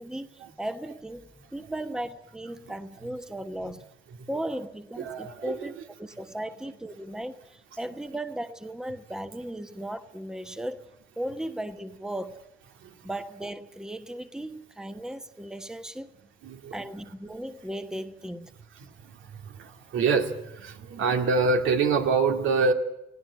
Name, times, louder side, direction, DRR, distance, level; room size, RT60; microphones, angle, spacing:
voice 1, 0.0-3.8 4.3-5.7 6.0-10.8 11.2-12.4 13.0-16.1 16.7-18.5, right 1 dB, 5° right, 10 dB, 1.1 m, -36 dB
voice 2, 5.0-5.8 12.8-12.9 16.4-16.8 18.8-22.7, right 4 dB, 80° right, 5 dB, 2.2 m, -26 dB
18.5 x 17.0 x 8.5 m, 0.85 s
cardioid pair, 90°, 20 cm